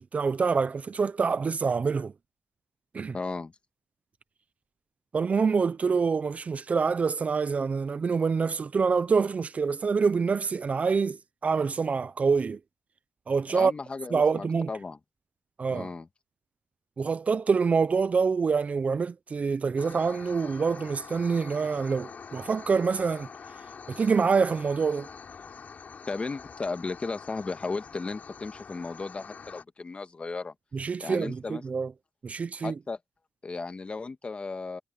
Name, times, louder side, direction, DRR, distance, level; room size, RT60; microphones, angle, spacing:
voice 1, 0.0-2.1 2.9-3.2 5.1-12.6 13.3-13.7 14.1-14.7 15.6-15.9 17.0-23.3 23.9-25.1 30.7-31.9 32.2-32.7, right 5 dB, 40° right, 0.6 m, -26 dB
voice 2, 3.1-3.5 13.5-15.0 15.7-16.1 26.1-30.5 31.0-31.6 32.6-33.0 33.4-34.8, left 4 dB, 30° left, 1.7 m, -35 dB
sound 1, 19.8-29.6, left 5 dB, 50° left, 3.9 m, -45 dB
cardioid pair, 100°, 4 cm